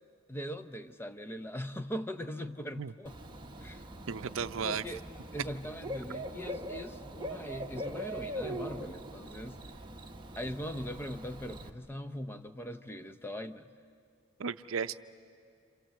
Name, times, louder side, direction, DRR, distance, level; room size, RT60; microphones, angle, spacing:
voice 1, 0.3-3.2 3.6-3.8 4.6-5.1 5.3-9.6 10.3-13.7, equal, 10° left, 10 dB, 0.6 m, -40 dB
Bird / Cricket, 3.1-11.7, equal, 20° right, 1.1 m, -42 dB
voice 2, 4.1-4.8 14.4-14.9, right 6 dB, 70° right, 12 dB, 0.6 m, -34 dB
28.0 x 27.5 x 7.6 m, 2.4 s
head